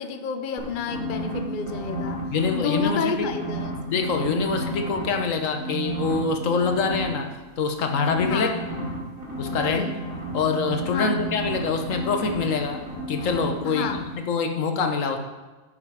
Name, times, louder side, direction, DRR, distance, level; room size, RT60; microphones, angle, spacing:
voice 1, 0.0-2.2 2.5-4.1 8.2-8.6 9.5-10.0 10.9-11.3 13.6-14.0, left 5 dB, 50° left, 7 dB, 0.7 m, -30 dB
sound 1, 0.6-2.8 3.2-5.2 5.6-7.0 7.9-13.5 13.8-14.0, right 1 dB, 80° right, 3.1 m, -32 dB
voice 2, 2.3-3.1 3.9-7.3 7.6-8.5 9.4-9.9 10.3-12.8 13.1-15.2, left 4 dB, 70° left, 5 dB, 1.3 m, -25 dB
10.5 x 7.4 x 4.8 m, 1.2 s
omnidirectional pair, 1.4 m